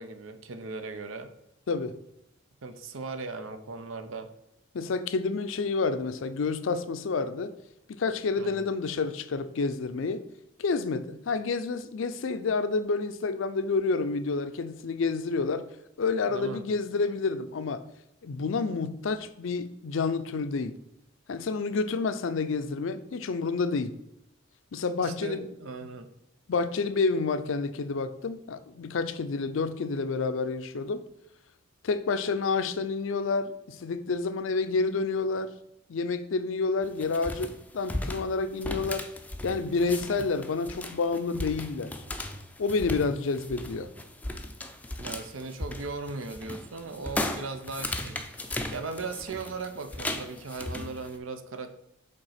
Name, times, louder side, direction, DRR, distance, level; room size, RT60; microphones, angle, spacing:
voice 1, 0.0-1.3 2.6-4.3 8.3-8.6 16.3-16.7 25.0-26.1 45.0-51.7, right 3 dB, 85° right, 0.7 m, -38 dB
voice 2, 4.7-7.5 7.9-10.2 10.6-15.6 16.0-17.8 18.2-20.8 21.3-23.9 24.7-25.5 26.5-31.0 31.8-35.5 35.9-39.1 39.4-41.9 42.6-43.9, left 4 dB, 75° left, 0.5 m, -29 dB
sound 1, 36.8-51.1, left 1 dB, 10° left, 0.4 m, -37 dB
5.4 x 3.7 x 5.7 m
head